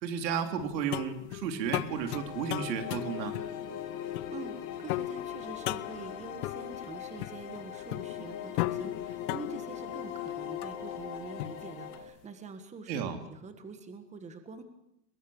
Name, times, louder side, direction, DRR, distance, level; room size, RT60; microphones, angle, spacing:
voice 1, 0.0-3.3 12.9-13.2, right 7 dB, 80° right, 7 dB, 3.5 m, -33 dB
sound 1, 0.6-12.1, left 17 dB, 60° left, 0.9 m, -38 dB
sound 2, 1.9-12.0, left 10 dB, 35° left, 3.3 m, -40 dB
voice 2, 4.3-14.6, right 4 dB, 15° right, 8 dB, 1.6 m, -45 dB
23.5 x 21.5 x 7.2 m, 0.82 s
supercardioid pair, 160°, 50 cm